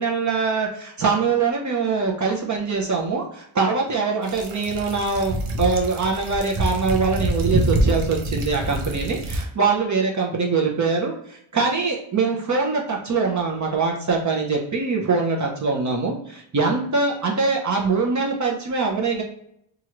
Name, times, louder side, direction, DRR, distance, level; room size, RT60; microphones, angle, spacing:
voice 1, 0.0-19.2, right 4 dB, 35° right, 0 dB, 0.6 m, -23 dB
sound 1, 4.2-9.4, right 1 dB, 85° right, 0.7 m, -25 dB
3.0 x 2.4 x 2.9 m, 0.72 s
wide cardioid pair, 120°, 49 cm